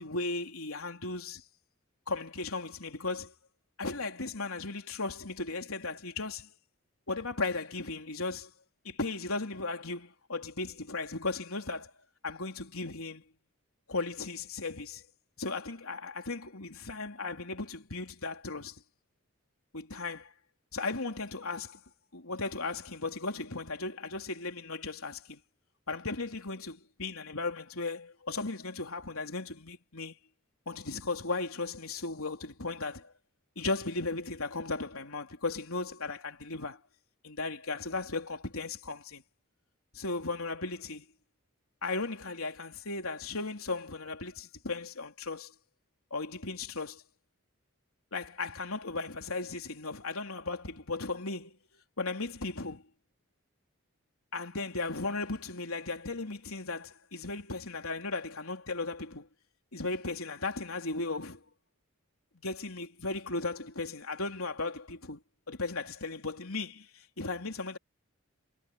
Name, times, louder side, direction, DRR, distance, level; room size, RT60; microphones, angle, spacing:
voice 1, 0.0-1.4 2.1-3.3 3.8-6.5 7.1-8.5 8.8-11.9 12.2-13.2 13.9-15.0 15.4-18.8 19.7-20.3 20.7-21.8 22.1-25.4 25.9-30.2 30.7-33.1 33.6-36.8 37.2-39.2 39.9-41.0 41.8-45.5 46.1-47.0 48.1-51.6 52.0-52.8 54.3-59.3 59.7-61.4 62.4-65.2 65.5-67.8, left 3 dB, 85° left, 3.7 m, -36 dB
head